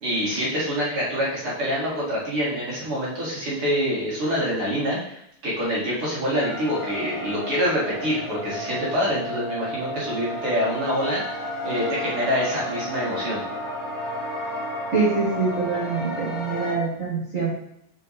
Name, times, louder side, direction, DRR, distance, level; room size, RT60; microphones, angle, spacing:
voice 1, 0.0-13.4, equal, 45° right, -7 dB, 2.5 m, -26 dB
sound 1, 6.3-16.7, equal, 25° left, 2.2 m, -32 dB
voice 2, 14.9-17.5, right 4 dB, 90° right, -5 dB, 0.7 m, -24 dB
6.4 x 4.4 x 4.1 m, 0.73 s
omnidirectional pair, 4.0 m